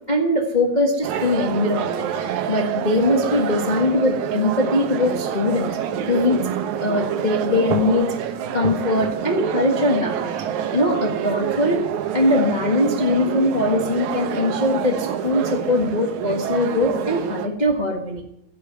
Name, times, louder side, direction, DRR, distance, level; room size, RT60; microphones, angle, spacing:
voice 1, 0.1-6.5 6.8-10.3 10.7-11.8 12.1-18.2, left 1 dB, 70° left, 1 dB, 0.4 m, -21 dB
sound 1, 1.0-17.5, right 9 dB, 70° right, 2.2 m, -27 dB
16.5 x 6.9 x 9.2 m, 0.81 s
omnidirectional pair, 3.8 m